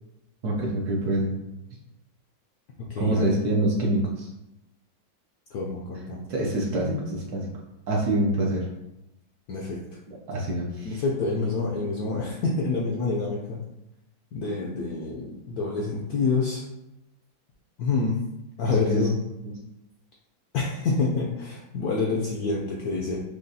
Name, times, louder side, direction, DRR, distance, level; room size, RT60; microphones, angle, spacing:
voice 1, 0.4-1.3 3.0-4.3 6.3-7.5 7.9-8.7 10.1-10.9 18.6-19.0 19.4-19.5, right 1 dB, 65° right, -3 dB, 1.1 m, -26 dB
voice 2, 2.9-3.3 5.5-6.3 9.5-9.8 10.8-13.6 14.3-16.6 17.8-18.2 18.6-19.2 20.5-23.2, left 3 dB, 75° left, -3 dB, 0.9 m, -27 dB
6.2 x 2.3 x 2.7 m, 0.91 s
omnidirectional pair, 2.1 m